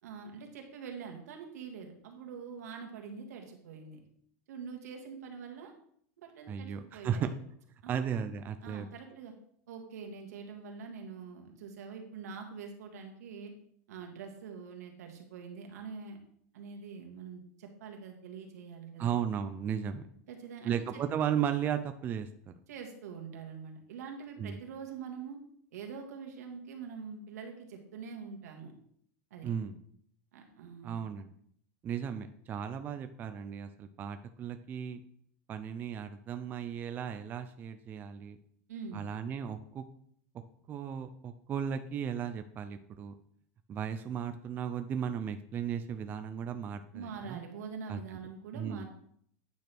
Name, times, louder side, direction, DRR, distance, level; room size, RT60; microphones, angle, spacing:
voice 1, 0.0-4.0 4.5-5.7 6.2-7.3 7.8-7.9 8.6-9.4 9.7-13.5 13.9-16.2 16.5-19.1 20.3-21.0 22.7-25.4 25.7-28.7 29.3-29.5 30.3-31.0 38.7-39.1 46.9-48.9, right 6 dB, 85° right, 3 dB, 1.8 m, -44 dB
voice 2, 6.5-7.3 7.9-8.9 19.0-20.0 20.6-22.5 24.4-24.6 29.4-29.8 30.8-31.3 31.8-35.0 35.5-38.4 38.9-39.8 40.7-43.1 43.7-47.4 47.9-48.2 48.5-48.9, right 8 dB, 20° right, 9 dB, 0.4 m, -35 dB
9.2 x 6.0 x 3.4 m, 0.65 s
supercardioid pair, 155°, 8 cm